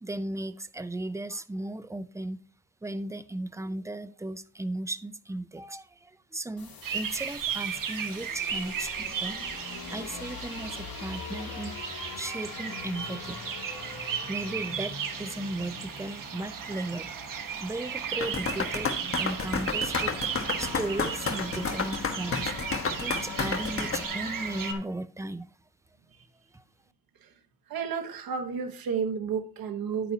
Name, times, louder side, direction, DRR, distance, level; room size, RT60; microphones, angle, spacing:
voice 1, 0.0-2.4 2.8-9.4 9.9-11.8 12.2-13.4 14.3-17.1 17.6-22.5 23.0-25.5 26.5-26.6, right 2 dB, 10° right, 0.6 m, -36 dB
sound 1, 6.6-24.8, left 5 dB, 85° left, 2.5 m, -43 dB
sound 2, 6.8-24.7, right 7 dB, 65° right, 1.2 m, -35 dB
sound 3, 18.2-24.0, left 5 dB, 40° left, 1.3 m, -30 dB
voice 2, 27.7-30.1, right 6 dB, 85° right, 1.3 m, -31 dB
10.0 x 9.1 x 2.8 m
cardioid pair, 110°, 35 cm